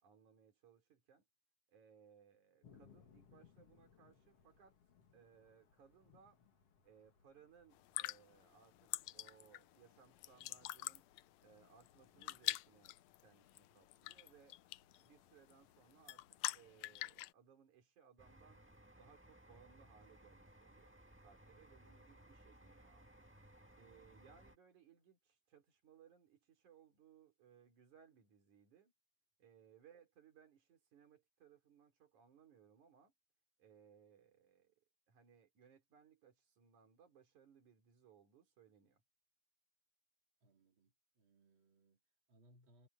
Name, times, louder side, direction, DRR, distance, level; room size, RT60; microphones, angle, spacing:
voice 1, 0.0-1.2 1.7-4.8 5.1-6.4 6.8-11.1 11.4-13.0 13.2-14.6 15.0-16.2 16.5-18.6 19.0-23.1 23.8-28.9 29.4-33.1 33.6-39.0, right 7 dB, 85° right, 4.9 m, -66 dB
sound 1, 2.6-17.2, left 6 dB, 55° left, 3.0 m, -70 dB
sound 2, 7.7-17.3, left 17 dB, 80° left, 1.8 m, -46 dB
sound 3, 18.2-24.6, right 1 dB, 5° right, 0.9 m, -62 dB
voice 2, 40.4-42.9, right 1 dB, 40° right, 4.4 m, -70 dB
omnidirectional pair, 3.4 m